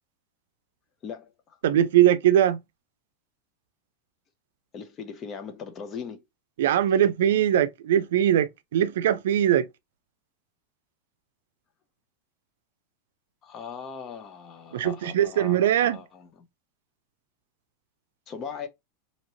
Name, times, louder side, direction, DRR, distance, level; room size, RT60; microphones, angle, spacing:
voice 1, 1.0-1.6 4.7-6.2 13.4-16.5 18.3-18.7, left 6 dB, 30° left, 0.6 m, -39 dB
voice 2, 1.6-2.6 6.6-9.7 14.7-16.0, right 11 dB, 85° right, 0.4 m, -21 dB
3.0 x 2.8 x 2.7 m
supercardioid pair, 150°, 0 cm